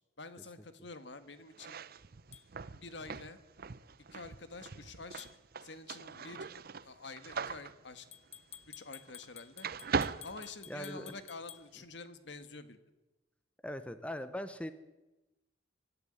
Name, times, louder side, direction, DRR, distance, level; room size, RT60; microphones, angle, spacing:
voice 1, 0.2-1.8 2.7-3.4 4.1-5.3 5.6-6.5 6.8-8.1 8.8-9.7 10.2-12.8, left 3 dB, 70° left, 11 dB, 1.7 m, -48 dB
sound 1, 1.5-9.3 9.6-11.2, right 5 dB, 55° right, 0.7 m, -40 dB
sound 2, 2.3-2.5 5.2-5.4 8.1-11.7, left 10 dB, 35° left, 0.8 m, -52 dB
voice 2, 10.7-11.1 13.6-14.7, left 1 dB, 5° left, 11 dB, 0.8 m, -40 dB
24.5 x 11.5 x 9.9 m, 1.1 s
head